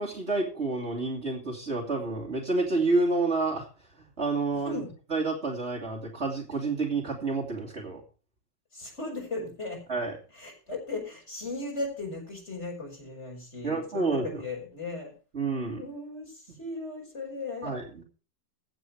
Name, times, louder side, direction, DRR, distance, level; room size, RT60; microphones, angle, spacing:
voice 1, 0.0-3.7 4.2-4.8 5.1-8.0 9.9-10.2 13.6-14.4 15.3-15.8 17.6-18.0, right 3 dB, 35° right, -2 dB, 2.9 m, -29 dB
voice 2, 8.7-9.8 10.3-15.1 15.8-17.7, left 2 dB, 35° left, 1 dB, 5.6 m, -37 dB
15.5 x 8.4 x 4.6 m, 0.37 s
omnidirectional pair, 1.9 m